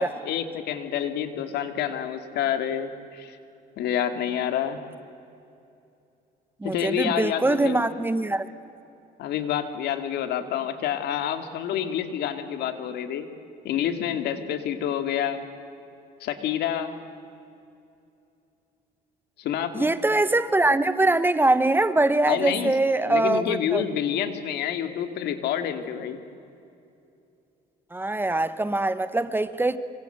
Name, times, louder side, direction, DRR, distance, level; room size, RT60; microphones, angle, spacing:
voice 1, 0.0-3.4 3.8-4.8 6.6-7.8 9.2-13.3 13.6-15.4 16.2-16.9 19.4-19.9 22.3-22.7 23.0-26.2, left 9 dB, 75° left, 8 dB, 2.3 m, -28 dB
voice 2, 6.6-8.5 19.7-23.8 27.9-29.8, right 2 dB, 10° right, 13 dB, 1.1 m, -23 dB
26.0 x 24.5 x 8.1 m, 2.7 s
cardioid pair, 110°, 17 cm